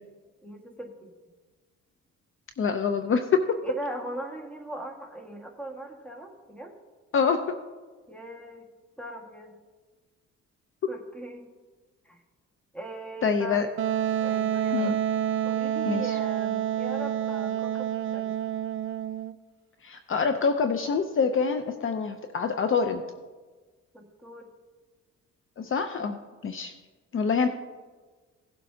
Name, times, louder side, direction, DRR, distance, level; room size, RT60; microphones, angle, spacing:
voice 1, 0.4-1.1 3.6-6.8 8.1-8.7 9.0-9.5 10.9-11.5 12.0-12.2 12.7-13.8 14.2-14.9 15.4-18.3 23.9-24.5, right 1 dB, 5° left, 2 dB, 1.7 m, -39 dB
voice 2, 2.6-3.6 7.1-7.5 13.2-13.7 14.7-15.0 15.9-16.2 19.8-23.0 25.6-26.7 27.1-27.5, left 5 dB, 45° left, 8 dB, 0.6 m, -26 dB
Wind instrument woodwind instrument, 13.8-19.3, right 10 dB, 45° right, 0.4 m, -28 dB
17.0 x 7.5 x 2.8 m, 1.4 s
cardioid pair, 90°, 30 cm